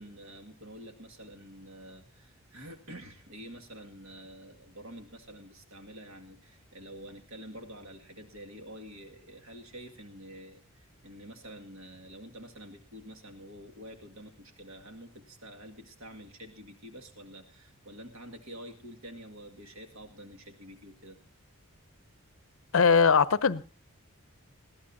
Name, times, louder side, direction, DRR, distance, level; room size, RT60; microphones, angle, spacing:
voice 1, 0.0-21.2, equal, 65° right, 2.0 m, -48 dB
voice 2, 22.7-23.6, left 5 dB, 70° left, 0.6 m, -21 dB
21.0 x 15.0 x 2.7 m
head